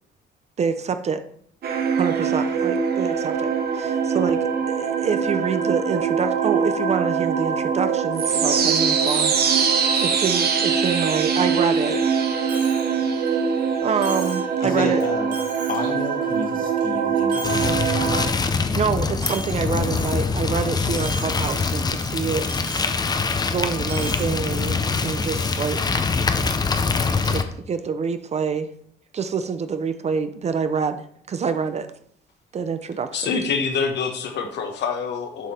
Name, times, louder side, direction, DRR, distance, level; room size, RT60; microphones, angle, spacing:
voice 1, 0.6-1.2 2.0-9.3 10.0-12.0 13.8-15.1 18.7-22.5 23.5-26.0 27.2-28.7 29.1-31.9 32.5-33.4, right 6 dB, 35° right, 10 dB, 0.5 m, -26 dB
sound 1, 1.6-18.3, right 6 dB, 60° right, 1.1 m, -22 dB
Coin (dropping), 12.5-12.9 13.3-13.4 14.0-14.5 15.0-15.1 15.3-15.9 16.3-16.9 17.2-17.9 18.2-18.5 19.2-20.4 20.8-21.3 21.7-21.8 22.5-22.9 23.8-24.3, right 2 dB, 85° right, 2.5 m, -37 dB
voice 2, 14.6-15.3 15.7-18.8, left 4 dB, 50° left, 3 dB, 1.6 m, -32 dB
sound 2, 17.4-27.4, left 4 dB, 20° left, 0.5 m, -24 dB
voice 3, 33.1-35.5, left 5 dB, 70° left, 5 dB, 1.1 m, -26 dB
7.4 x 5.2 x 4.2 m, 0.65 s
cardioid pair, 135°, 19 cm